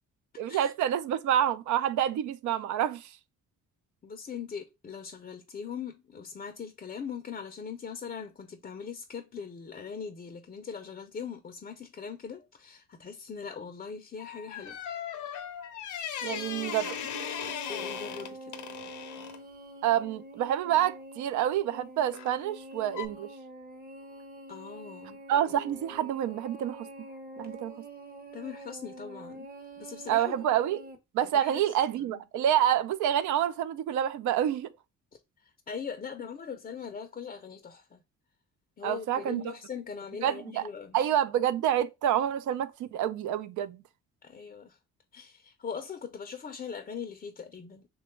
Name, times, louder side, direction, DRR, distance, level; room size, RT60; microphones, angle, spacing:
voice 1, 0.4-3.2 16.2-17.3 19.8-23.3 25.3-26.9 27.4-27.7 30.1-30.8 31.1-34.7 38.8-39.5 40.2-40.7 40.9-43.8, right 10 dB, 75° right, 0.5 m, -28 dB
voice 2, 4.0-14.8 17.7-18.5 24.5-25.2 28.3-29.5 29.8-30.4 31.2-31.6 32.0-32.2 35.4-38.0 38.8-41.0 44.2-44.8 45.1-47.9, left 6 dB, 30° left, 0.4 m, -41 dB
sound 1, 14.2-19.4 22.1-22.4 22.9-23.1, left 9 dB, 75° left, 0.6 m, -38 dB
sound 2, 16.2-31.0, right 1 dB, 30° right, 0.7 m, -46 dB
3.0 x 2.2 x 4.2 m
cardioid pair, 90°, 30 cm